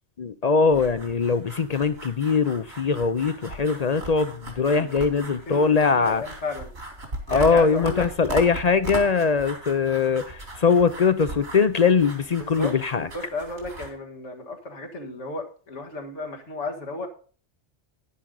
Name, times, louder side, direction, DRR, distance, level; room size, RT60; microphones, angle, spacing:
voice 1, 0.2-6.2 7.3-13.1, left 5 dB, 45° left, 0.6 m, -21 dB
sound 1, 0.7-13.9, right 1 dB, 75° right, 3.2 m, -38 dB
voice 2, 5.5-6.7 7.3-8.1 12.4-12.7 13.1-17.1, left 3 dB, 85° left, 2.1 m, -34 dB
10.5 x 10.5 x 3.8 m
omnidirectional pair, 1.2 m